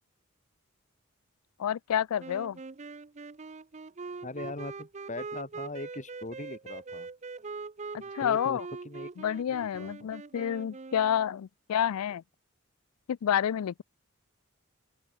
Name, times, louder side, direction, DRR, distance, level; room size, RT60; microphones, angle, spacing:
voice 1, 1.6-2.6 7.9-8.6 9.2-12.2 13.1-13.8, left 9 dB, 85° left, 0.4 m, -29 dB
sound 1, 2.2-11.4, right 4 dB, 30° right, 0.6 m, -42 dB
voice 2, 4.2-7.1 8.0-10.1, left 2 dB, 35° left, 2.8 m, -41 dB
open air
head